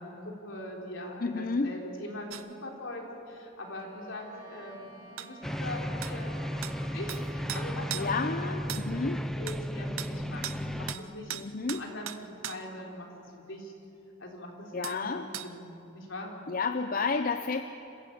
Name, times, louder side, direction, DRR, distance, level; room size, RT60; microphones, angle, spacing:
voice 1, 0.0-6.4 6.8-8.1 8.4-8.6 8.9-11.3 11.7-13.1 13.4-13.7 14.2-15.6 15.9-16.3, left 1 dB, 70° left, 0 dB, 3.8 m, -42 dB
voice 2, 1.2-1.7 7.9-9.2 11.3-11.8 14.7-15.3 16.5-17.6, left 4 dB, 45° left, 8 dB, 0.6 m, -31 dB
sound 1, 2.3-2.5 5.2-5.3 6.0-6.2 6.6-6.8 7.1-7.2 7.5-8.1 8.7-8.9 9.5-9.6 10.0-10.1 10.4-10.6 10.9-11.1 11.3-12.6 14.8-15.0 15.3-15.5, right 11 dB, 85° right, 0.8 m, -38 dB
Bowed string instrument, 3.6-8.4, right 3 dB, 50° right, 5.0 m, -52 dB
sound 2, 5.4-10.9, equal, ahead, 0.7 m, -34 dB
26.5 x 15.5 x 8.6 m, 2.9 s
head